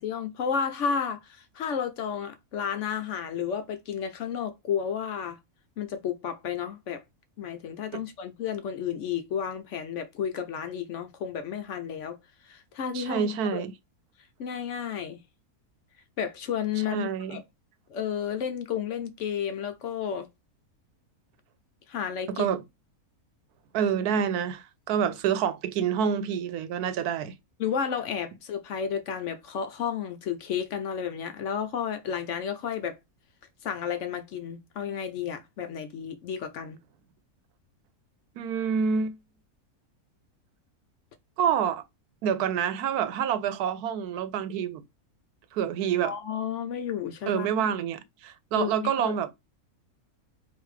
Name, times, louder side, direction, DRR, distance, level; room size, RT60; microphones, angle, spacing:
voice 1, 0.0-5.4 5.8-7.0 7.4-12.2 12.4-13.6 14.4-15.2 16.2-17.4 17.9-20.3 21.9-22.5 27.6-33.0 33.6-36.8 46.0-47.5 48.5-49.3, left 7 dB, 65° left, 0.8 m, -32 dB
voice 2, 12.9-13.7 16.9-17.4 22.4-22.6 23.7-27.4 38.4-39.1 41.4-41.8 42.2-44.8 45.5-46.1 47.3-49.3, right 8 dB, 85° right, 1.1 m, -27 dB
4.9 x 2.7 x 3.1 m
omnidirectional pair, 1.6 m